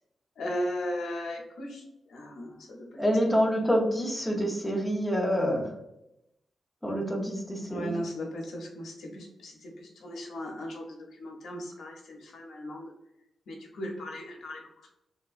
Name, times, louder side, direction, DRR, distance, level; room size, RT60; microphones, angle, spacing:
voice 1, 0.4-3.0 7.6-12.9 13.5-14.6, equal, 85° left, 1 dB, 0.7 m, -37 dB
voice 2, 3.0-5.7 6.8-7.9, equal, 5° left, -2 dB, 0.6 m, -27 dB
3.2 x 2.9 x 2.4 m, 0.85 s
wide cardioid pair, 180°, 0 cm